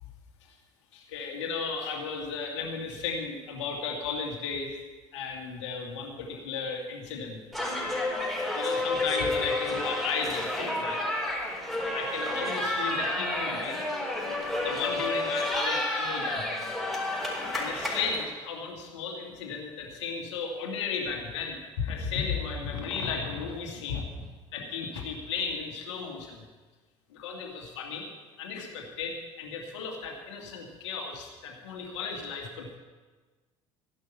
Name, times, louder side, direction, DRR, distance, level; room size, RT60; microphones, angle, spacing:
voice 1, 0.9-4.8 5.1-7.4 8.5-11.5 11.9-13.9 14.6-16.7 17.5-26.5 27.1-28.1 28.4-32.8, left 5 dB, 70° left, 1 dB, 2.5 m, -35 dB
sound 1, 7.5-18.3, left 1 dB, ahead, 4.7 m, -30 dB
14.5 x 11.0 x 5.8 m, 1.3 s
figure-of-eight pair, 65°, 15 cm